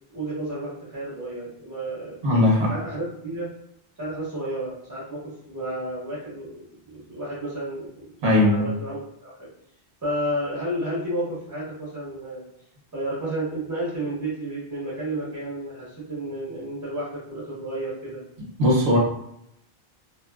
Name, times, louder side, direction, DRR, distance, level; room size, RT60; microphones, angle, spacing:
voice 1, 0.1-2.2 2.7-3.5 4.0-5.2 5.5-9.5 10.0-12.4 12.9-18.2, right 1 dB, 20° right, -9 dB, 0.8 m, -31 dB
voice 2, 2.2-2.7 8.2-8.7 18.6-19.0, left 1 dB, 80° right, -3 dB, 1.1 m, -18 dB
2.7 x 2.2 x 2.3 m, 0.75 s
omnidirectional pair, 1.0 m